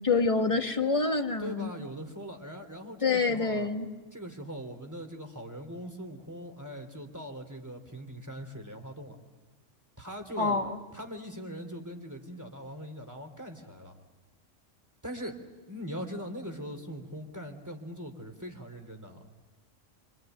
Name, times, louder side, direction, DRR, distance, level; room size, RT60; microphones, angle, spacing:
voice 1, 0.0-1.7 3.0-3.9 10.4-10.8, left 4 dB, 25° left, 5 dB, 1.5 m, -27 dB
voice 2, 1.4-3.7 4.1-9.2 10.0-10.6 10.9-13.9 15.0-15.4 15.7-19.2, equal, 15° right, 5 dB, 2.9 m, -41 dB
26.5 x 24.5 x 9.1 m, 1.3 s
omnidirectional pair, 1.3 m